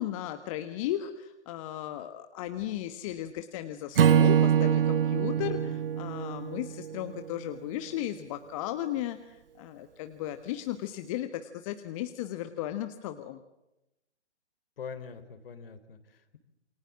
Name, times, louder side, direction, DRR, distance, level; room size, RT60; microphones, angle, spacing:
voice 1, 0.0-13.4, left 12 dB, 30° left, 9 dB, 1.4 m, -35 dB
Acoustic guitar / Strum, 4.0-7.3, right 9 dB, 55° right, 0.9 m, -24 dB
voice 2, 5.4-5.8 14.8-16.4, left 6 dB, 55° left, 11 dB, 3.8 m, -44 dB
28.5 x 24.0 x 7.4 m, 0.91 s
figure-of-eight pair, 125°, 34 cm